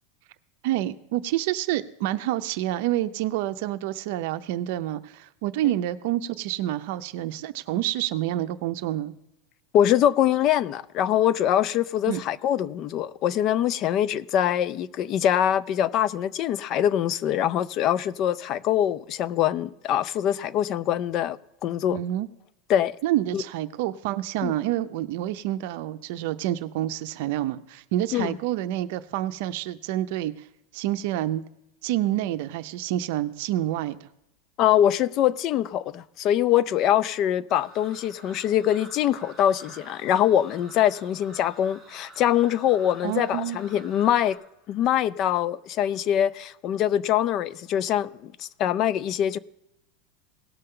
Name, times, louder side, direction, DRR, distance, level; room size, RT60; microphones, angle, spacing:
voice 1, 0.6-9.1 12.1-12.2 21.9-22.3 23.0-30.3 30.7-31.4 31.8-34.0 43.0-43.6, right 13 dB, 60° right, 0.6 m, -28 dB
voice 2, 9.7-22.0 22.7-22.9 23.3-23.4 24.4-24.5 28.1-28.4 34.6-44.4 44.7-49.4, left 11 dB, 35° left, 0.4 m, -23 dB
sound 1, 37.5-44.4, right 1 dB, 5° left, 4.9 m, -49 dB
18.0 x 6.7 x 3.7 m
supercardioid pair, 155°, 0 cm